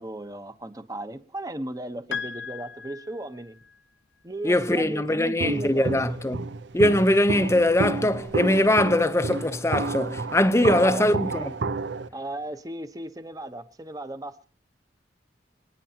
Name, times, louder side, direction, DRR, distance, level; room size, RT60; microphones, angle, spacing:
voice 1, 0.0-3.6 4.2-6.2 10.6-11.1 12.1-14.5, right 1 dB, 20° right, 1.0 m, -36 dB
Piano, 2.1-3.8, left 6 dB, 70° left, 0.8 m, -37 dB
voice 2, 4.4-6.4 6.7-11.5, left 1 dB, 15° left, 0.8 m, -22 dB
Walk footsteps, 5.4-12.1, right 3 dB, 75° right, 0.7 m, -31 dB
28.5 x 10.0 x 2.9 m
head